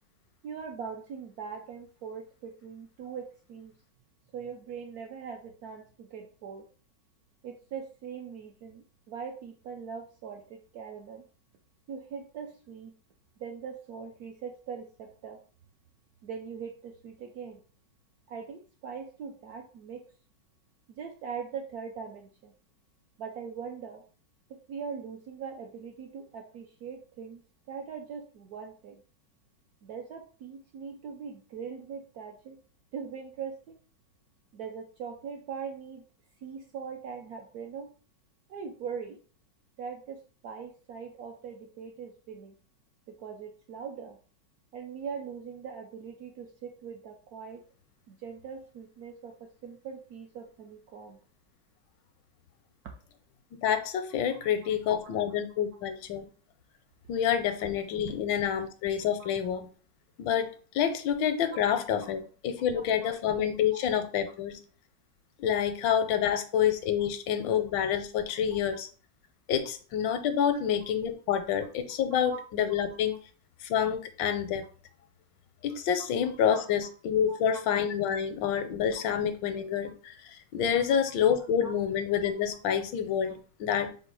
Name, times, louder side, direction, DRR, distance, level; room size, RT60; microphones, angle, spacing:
voice 1, 0.4-3.7 4.3-6.6 7.4-11.2 11.9-12.9 13.4-15.4 16.2-17.6 18.3-20.0 20.9-22.5 23.2-24.0 24.5-27.4 27.7-29.0 29.8-32.6 32.9-33.8 34.5-36.0 36.4-37.9 38.5-39.2 39.8-40.2 40.4-42.6 43.2-44.2 44.7-47.6 48.1-51.2 54.3-54.4 62.7-63.1 63.7-63.8 72.3-72.4 76.5-76.6 77.3-77.6 80.7-80.9 81.6-81.7 83.2-83.3, right 6 dB, 75° right, 3 dB, 0.9 m, -41 dB
voice 2, 53.6-56.2 57.1-59.7 60.2-64.6 65.4-68.9 69.5-73.2 73.6-74.6 75.6-83.9, left 8 dB, 80° left, 8 dB, 1.3 m, -28 dB
4.3 x 2.2 x 4.6 m, 0.39 s
omnidirectional pair, 2.1 m